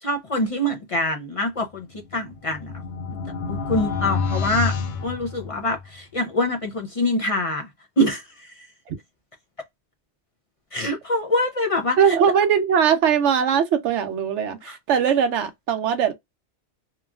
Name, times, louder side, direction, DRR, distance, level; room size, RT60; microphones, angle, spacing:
voice 1, 0.0-1.9 2.1-2.7 3.5-4.7 5.0-7.7 8.0-8.7 10.7-12.2 14.7-14.8, left 1 dB, 45° left, 0.4 m, -25 dB
sound 1, 2.0-5.9, left 5 dB, 65° left, 0.8 m, -28 dB
voice 2, 12.0-16.1, right 7 dB, 75° right, 0.9 m, -20 dB
3.0 x 2.3 x 2.3 m
omnidirectional pair, 1.2 m